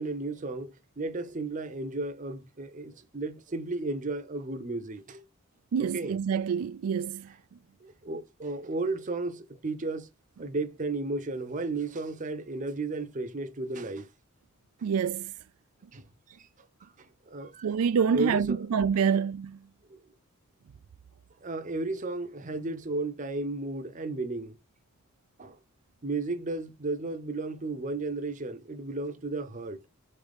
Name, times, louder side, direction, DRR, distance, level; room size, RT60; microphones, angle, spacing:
voice 1, 0.0-5.2 5.8-6.2 7.8-10.1 10.4-14.1 15.9-16.4 16.8-17.7 18.1-18.7 19.9-20.0 21.4-24.6 25.4-25.6 26.0-29.9, right 2 dB, 35° right, 0.7 m, -34 dB
voice 2, 5.7-7.3 14.8-15.3 17.6-19.6, right 6 dB, 80° right, 0.4 m, -27 dB
4.0 x 3.8 x 3.4 m
head